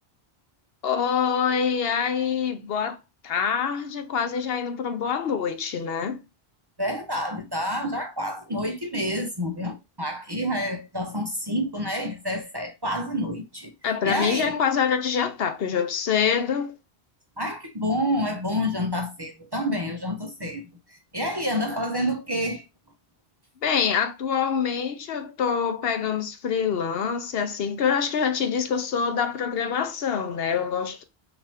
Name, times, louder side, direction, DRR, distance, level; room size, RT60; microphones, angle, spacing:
voice 1, 0.8-3.0 3.2-6.2 13.8-16.7 23.6-31.0, left 7 dB, 70° left, 0.9 m, -25 dB
voice 2, 6.8-13.7 14.0-14.5 17.4-22.6, equal, 25° right, 0.7 m, -28 dB
5.8 x 2.6 x 3.4 m
omnidirectional pair, 1.1 m